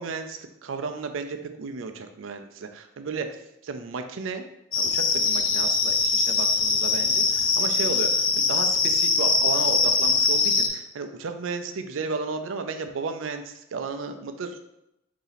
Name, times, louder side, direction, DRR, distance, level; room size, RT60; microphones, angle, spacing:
voice 1, 0.0-3.3 3.6-4.4 4.8-14.6, right 4 dB, 75° right, 7 dB, 0.4 m, -33 dB
sound 1, 4.7-10.7, left 4 dB, 80° left, 0.6 m, -22 dB
4.0 x 2.8 x 4.0 m, 0.85 s
head